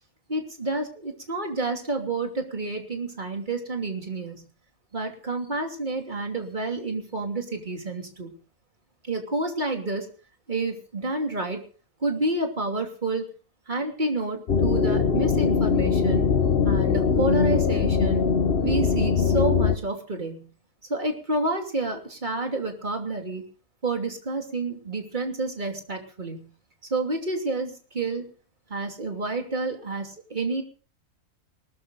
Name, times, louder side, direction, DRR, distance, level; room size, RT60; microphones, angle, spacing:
voice 1, 0.3-4.5 4.9-8.4 9.0-10.1 10.5-11.6 12.0-13.2 13.7-16.2 16.6-18.2 18.6-20.5 20.9-23.4 23.8-26.5 26.9-28.3 28.7-30.6, right 2 dB, 35° right, 3 dB, 3.0 m, -29 dB
sound 1, 14.5-19.8, left 6 dB, 50° left, 1.2 m, -22 dB
19.0 x 13.5 x 3.9 m, 0.38 s
omnidirectional pair, 1.5 m